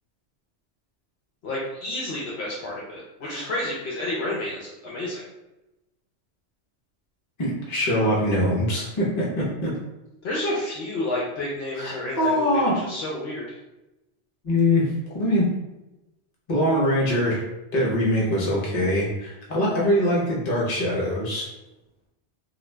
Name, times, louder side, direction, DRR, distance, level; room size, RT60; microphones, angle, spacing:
voice 1, 1.4-5.3 10.2-13.6, left 1 dB, 65° left, -5 dB, 0.8 m, -30 dB
voice 2, 7.4-9.7 11.8-12.8 14.4-14.9 15.1-15.5 16.5-17.4 17.7-21.5, left 1 dB, 40° left, -5 dB, 0.9 m, -23 dB
2.4 x 2.3 x 3.1 m, 0.96 s
omnidirectional pair, 1.2 m